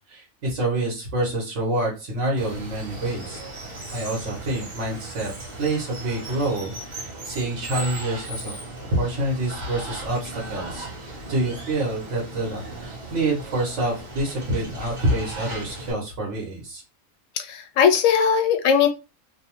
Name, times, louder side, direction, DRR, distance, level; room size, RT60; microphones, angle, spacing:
voice 1, 0.1-3.4 3.9-5.3 5.6-8.5 8.9-10.9 11.3-16.8, right 1 dB, 65° right, -3 dB, 1.3 m, -27 dB
Water, 2.4-15.9, right 2 dB, 40° right, 0.9 m, -37 dB
voice 2, 17.4-18.9, left 7 dB, 85° left, 7 dB, 1.0 m, -19 dB
2.9 x 2.0 x 2.8 m, 0.29 s
omnidirectional pair, 1.4 m